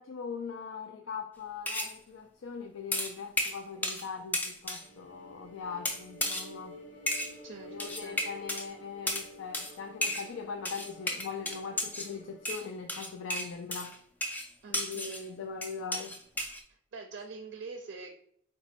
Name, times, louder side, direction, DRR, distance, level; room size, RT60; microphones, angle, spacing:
voice 1, 0.0-6.8 7.7-14.0 14.7-16.2, left 5 dB, 85° left, 4 dB, 0.4 m, -41 dB
sound 1, 1.7-2.0 2.9-4.1 4.3-4.9 5.8-6.5 7.1-7.3 7.8-8.7 9.1-9.3 9.5-9.7 10.0-10.3 10.6-12.1 12.4-15.2 15.6-16.6, left 1 dB, 10° left, 0.3 m, -33 dB
sound 2, 4.8-12.5, left 1 dB, 65° left, 1.1 m, -51 dB
voice 2, 7.4-8.2 14.6-15.1 16.9-18.1, right 4 dB, 65° right, 4 dB, 0.4 m, -44 dB
4.0 x 2.2 x 4.3 m, 0.66 s
head